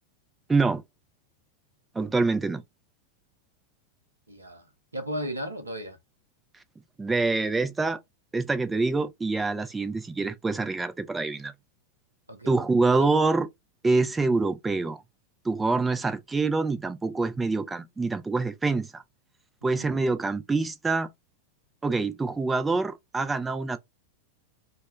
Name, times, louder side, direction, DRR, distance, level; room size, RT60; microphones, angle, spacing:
voice 1, 0.5-0.8 2.0-2.6 7.0-8.0 8.3-11.5 12.5-13.5 13.8-15.0 15.4-19.0 19.6-21.1 21.8-23.8, right 3 dB, 10° right, 0.4 m, -25 dB
voice 2, 4.3-6.0 12.3-12.9 19.6-19.9, equal, 80° right, 0.6 m, -36 dB
2.2 x 2.1 x 3.0 m
figure-of-eight pair, 90°, 0 cm